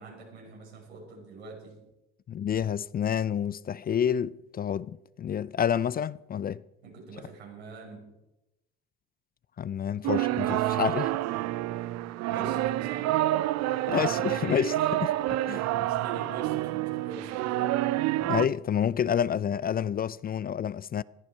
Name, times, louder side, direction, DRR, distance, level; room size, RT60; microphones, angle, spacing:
voice 1, 0.0-1.8 6.8-8.1 12.3-13.5 15.7-17.7, right 3 dB, 90° right, 6.4 m, -44 dB
voice 2, 2.3-6.6 9.6-11.1 13.9-15.1 15.5-15.7 18.3-21.0, left 8 dB, 30° left, 0.5 m, -29 dB
sound 1, 10.0-18.5, right 15 dB, 55° right, 0.7 m, -28 dB
21.0 x 14.0 x 4.6 m
hypercardioid pair, 65°, 32 cm